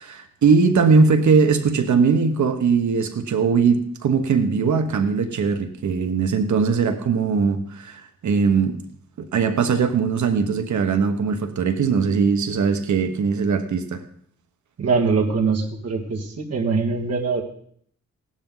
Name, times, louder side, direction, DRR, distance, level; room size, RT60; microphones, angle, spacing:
voice 1, 0.0-8.8 9.3-14.0, right 5 dB, 75° right, 7 dB, 1.4 m, -20 dB
voice 2, 14.8-17.4, right 4 dB, 60° right, 1 dB, 2.2 m, -22 dB
17.0 x 12.0 x 4.0 m, 0.62 s
wide cardioid pair, 160°, 29 cm